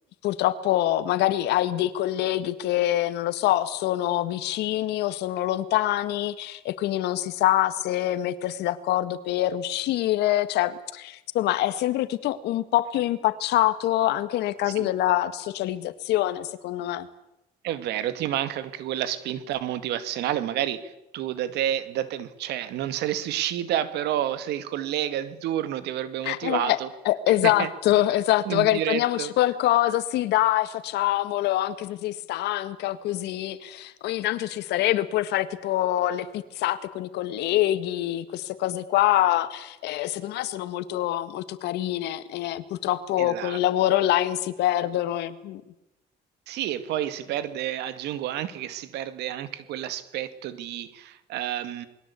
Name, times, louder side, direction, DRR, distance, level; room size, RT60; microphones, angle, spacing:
voice 1, 0.2-17.1 26.2-26.8 27.1-45.6, left 14 dB, 80° left, 13 dB, 1.9 m, -25 dB
voice 2, 17.6-26.9 27.4-27.7 28.5-29.3 43.2-43.6 46.5-51.9, right 11 dB, 80° right, 13 dB, 2.2 m, -30 dB
28.0 x 21.5 x 8.5 m, 0.89 s
cardioid pair, 110°, 17 cm